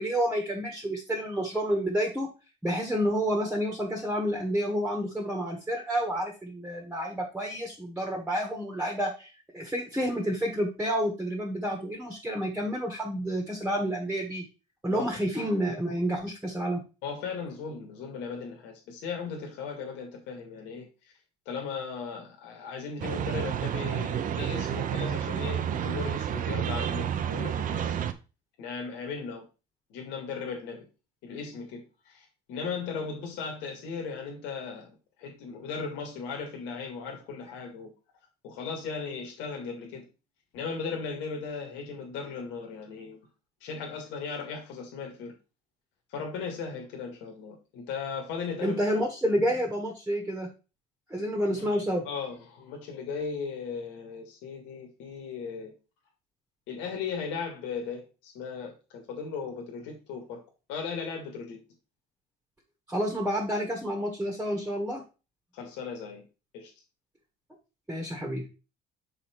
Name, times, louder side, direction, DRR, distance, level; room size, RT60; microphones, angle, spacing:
voice 1, 0.0-2.3 2.6-14.4 14.8-16.8 48.6-50.5 51.1-52.0 62.9-65.0 67.9-68.5, equal, 5° right, 1.5 m, -29 dB
voice 2, 17.0-21.1 21.5-28.0 28.6-29.4 29.9-30.8 31.2-31.8 32.1-34.9 35.2-37.9 38.4-40.0 40.5-43.2 43.6-45.3 46.1-49.0 51.5-51.7 52.0-55.7 56.7-60.4 60.7-61.6 65.5-66.2 66.5-66.7, left 5 dB, 85° left, 2.1 m, -37 dB
sound 1, 23.0-28.1, right 9 dB, 45° right, 0.8 m, -30 dB
6.3 x 4.4 x 4.5 m
cardioid pair, 130°, 19 cm